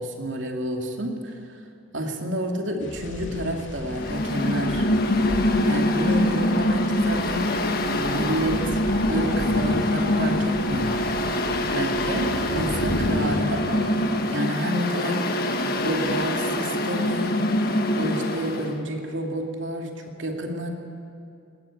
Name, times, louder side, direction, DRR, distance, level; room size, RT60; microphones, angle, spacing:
voice 1, 0.0-1.6 1.9-4.9 5.7-7.6 7.9-11.0 11.7-15.3 15.8-17.5 18.0-20.7, right 1 dB, 65° right, 2 dB, 2.6 m, -29 dB
sound 1, 2.8-13.4, left 1 dB, 70° left, 2.8 m, -35 dB
Mechanical fan, 3.9-18.7, left 1 dB, 50° left, 1.5 m, -24 dB
20.5 x 20.0 x 8.6 m, 2.5 s
head